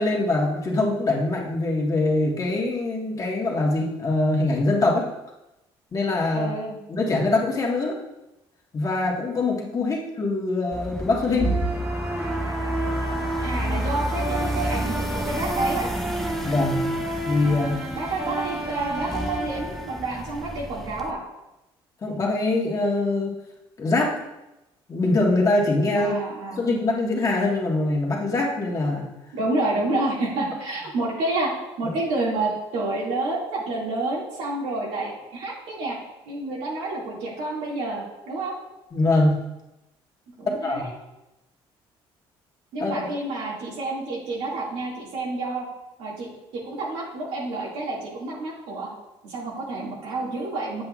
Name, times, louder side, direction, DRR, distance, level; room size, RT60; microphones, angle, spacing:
voice 1, 0.0-5.1 5.9-6.5 6.9-8.0 8.7-11.6 16.4-16.9 17.2-17.8 22.0-23.3 23.8-24.1 24.9-26.2 26.5-29.1 31.8-32.0 38.9-39.4 40.6-40.9 42.8-43.1, left 2 dB, 35° left, -2 dB, 1.6 m, -23 dB
voice 2, 6.3-6.8 13.4-15.9 17.9-21.2 26.0-26.6 29.3-36.0 36.3-38.5 40.4-40.9 42.7-45.7 46.0-48.9 49.2-50.8, right 2 dB, 85° right, -4 dB, 2.3 m, -29 dB
sound 1, 10.7-21.1, equal, 5° left, 0.6 m, -32 dB
sound 2, 11.4-20.4, right 2 dB, 15° right, 1.1 m, -31 dB
7.7 x 7.6 x 2.5 m, 0.94 s
cardioid pair, 105°, 10 cm